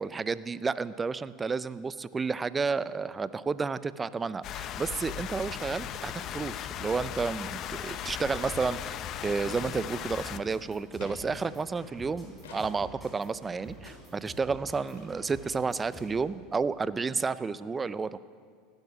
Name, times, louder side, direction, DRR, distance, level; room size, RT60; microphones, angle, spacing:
voice 1, 0.0-9.0 9.2-18.2, right 4 dB, 20° right, 17 dB, 0.5 m, -31 dB
sound 1, 4.4-10.4, left 10 dB, 50° left, 0.6 m, -37 dB
sound 2, 8.5-8.8 9.1-9.3 9.7-10.4 11.0-11.2 12.4-12.7 13.2-13.3 13.8-14.0 14.3-14.4 14.5-14.7 14.9-15.1, left 3 dB, 85° left, 3.4 m, -50 dB
sound 3, 9.5-16.3, equal, 5° right, 4.6 m, -48 dB
17.0 x 10.5 x 6.0 m, 2.1 s
hypercardioid pair, 95°, 0 cm